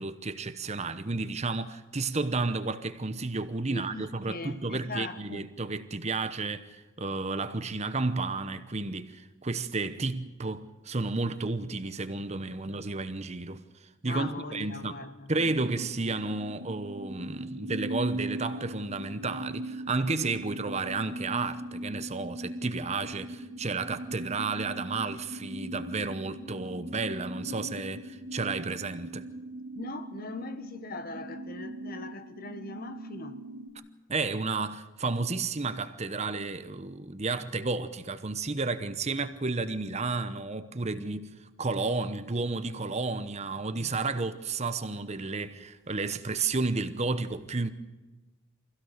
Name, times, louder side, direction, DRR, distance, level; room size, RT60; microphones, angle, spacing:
voice 1, 0.0-15.0 15.3-29.2 34.1-41.3 41.6-47.7, right 3 dB, 35° right, 1.0 m, -32 dB
voice 2, 3.7-5.5 14.1-15.3 29.8-33.5, left 2 dB, 45° left, 1.4 m, -40 dB
sound 1, 15.4-33.7, right 1 dB, 65° right, 2.1 m, -40 dB
24.5 x 16.5 x 6.6 m
head